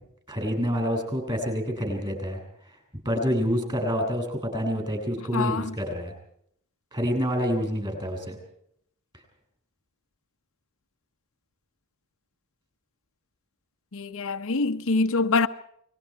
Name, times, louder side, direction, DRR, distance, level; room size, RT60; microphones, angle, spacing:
voice 1, 0.3-2.4 3.0-6.1 6.9-8.4, equal, 20° right, 6.8 m, -27 dB
voice 2, 5.3-5.7 13.9-15.5, left 3 dB, 65° left, 0.9 m, -25 dB
28.5 x 21.0 x 4.7 m
head